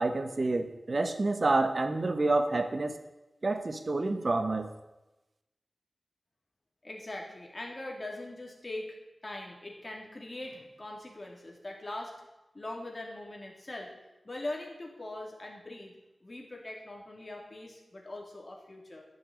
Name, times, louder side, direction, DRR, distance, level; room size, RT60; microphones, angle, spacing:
voice 1, 0.0-3.0 3.4-4.7, right 2 dB, 50° right, 8 dB, 1.2 m, -28 dB
voice 2, 6.8-9.0 9.2-12.2 12.5-13.9 14.2-15.9 16.2-19.0, left 1 dB, 35° left, 0 dB, 3.5 m, -41 dB
12.0 x 7.1 x 9.7 m, 1.0 s
wide cardioid pair, 65°, 0 cm